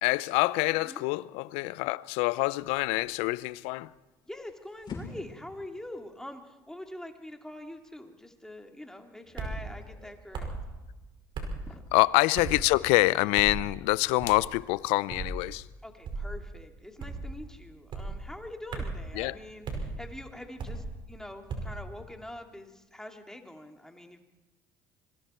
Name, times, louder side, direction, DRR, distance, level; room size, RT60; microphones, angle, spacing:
voice 1, 0.0-3.9 11.9-15.7 19.1-19.4, left 21 dB, 75° left, 0.6 m, -26 dB
sound 1, 3.8-10.1, left 4 dB, 40° left, 7.2 m, -49 dB
voice 2, 4.3-10.5 11.7-11.9 15.8-24.2, left 1 dB, 5° left, 2.8 m, -44 dB
sound 2, 9.4-9.6 10.3-10.6 11.3-11.6 12.3-12.6 13.4-13.6 14.2-14.5 15.1-15.4 16.0-16.3 17.0-17.3 17.9-18.2 18.7-19.0 19.6-19.9 20.6-20.9 21.5-21.8, right 3 dB, 50° right, 5.3 m, -35 dB
26.0 x 22.0 x 4.5 m
hypercardioid pair, 70°, 11 cm